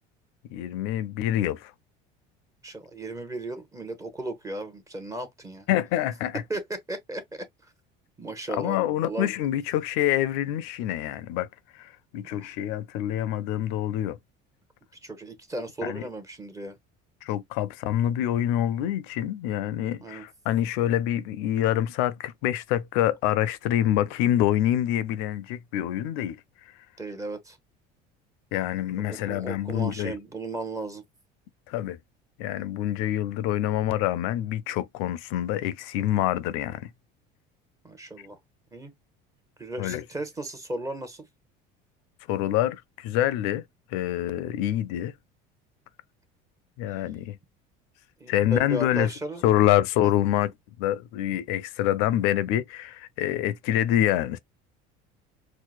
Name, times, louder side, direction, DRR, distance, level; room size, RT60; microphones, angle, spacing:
voice 1, 0.5-1.7 5.7-6.4 8.6-11.5 11.8-14.2 15.8-16.0 17.2-26.4 28.5-30.2 31.7-32.0 32.4-36.9 39.8-40.0 42.3-43.6 43.9-45.1 46.8-47.4 48.3-49.1 49.4-50.5 50.8-54.4, left 12 dB, 80° left, 0.4 m, -26 dB
voice 2, 2.6-5.6 6.5-7.5 8.2-9.3 12.3-12.5 15.0-16.7 20.0-20.2 27.0-27.6 29.1-31.0 37.8-38.4 38.7-38.9 39.6-41.3 48.2-49.4, right 1 dB, 15° right, 0.8 m, -35 dB
4.6 x 2.1 x 2.3 m
cardioid pair, 115°, 21 cm